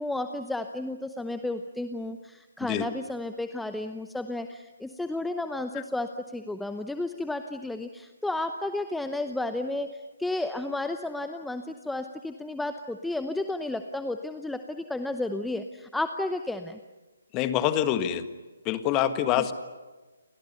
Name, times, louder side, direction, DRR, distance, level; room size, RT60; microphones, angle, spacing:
voice 1, 0.0-16.8 19.4-19.5, left 2 dB, 5° left, 8 dB, 0.8 m, -32 dB
voice 2, 17.3-18.2 18.6-19.5, left 11 dB, 20° left, 10 dB, 1.7 m, -25 dB
30.0 x 26.0 x 6.9 m, 1.3 s
figure-of-eight pair, 140°, 0 cm